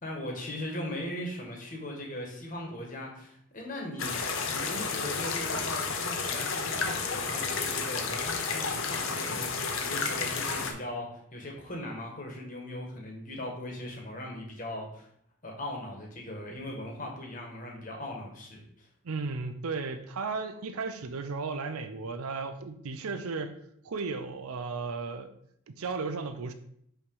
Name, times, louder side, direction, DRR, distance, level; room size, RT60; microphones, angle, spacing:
voice 1, 0.0-4.1 4.5-9.5 9.8-15.1 15.4-18.9, left 1 dB, 40° left, 1.3 m, -39 dB
sound 1, 4.0-10.7, left 4 dB, 70° left, 0.8 m, -31 dB
voice 2, 19.0-23.5 23.8-25.3 25.7-26.5, right 4 dB, 90° right, 0.6 m, -35 dB
5.6 x 3.2 x 5.4 m
head